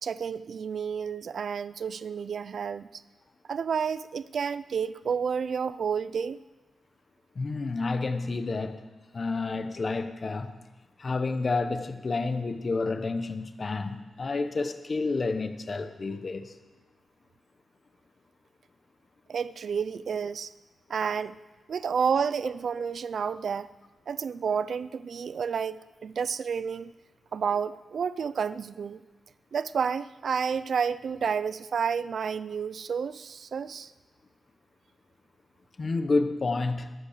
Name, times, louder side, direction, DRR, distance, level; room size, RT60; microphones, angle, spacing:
voice 1, 0.0-2.9 3.5-6.4 19.3-20.5 20.9-21.4 21.7-23.7 24.1-26.9 27.3-29.0 29.5-33.9, right 6 dB, 55° right, 15 dB, 0.4 m, -30 dB
voice 2, 7.3-8.8 9.1-10.5 11.0-16.6 35.8-36.9, left 3 dB, 30° left, 8 dB, 0.9 m, -29 dB
21.5 x 8.2 x 6.6 m, 1.2 s
wide cardioid pair, 170°, 0 cm